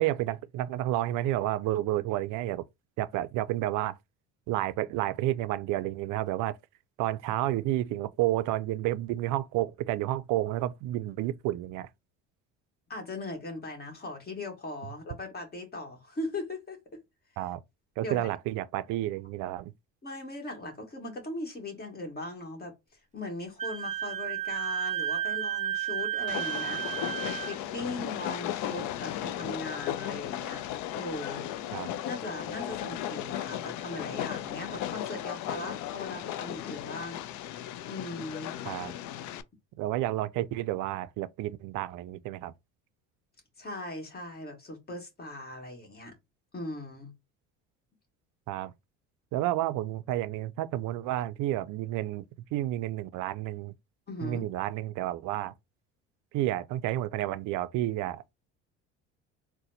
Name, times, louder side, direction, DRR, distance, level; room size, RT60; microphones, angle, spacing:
voice 1, 0.0-2.6 3.0-4.0 4.5-6.6 7.0-11.9 17.4-17.6 18.0-19.7 31.7-31.9 38.6-38.9 39.8-42.5 48.5-48.7 49.3-52.2 52.5-53.7 54.2-55.5 56.3-58.2, right 14 dB, 60° right, 0.5 m, -30 dB
voice 2, 12.9-16.8 18.0-18.3 20.0-22.7 23.1-30.6 30.9-31.5 32.1-37.2 37.9-38.5 43.6-46.1 46.5-47.1 54.1-54.4, left 2 dB, 25° left, 1.6 m, -39 dB
Wind instrument woodwind instrument, 23.6-27.6, right 10 dB, 20° right, 0.8 m, -32 dB
Train, 26.3-39.4, left 12 dB, 55° left, 0.5 m, -36 dB
3.9 x 2.2 x 2.7 m
supercardioid pair, 90°, 35 cm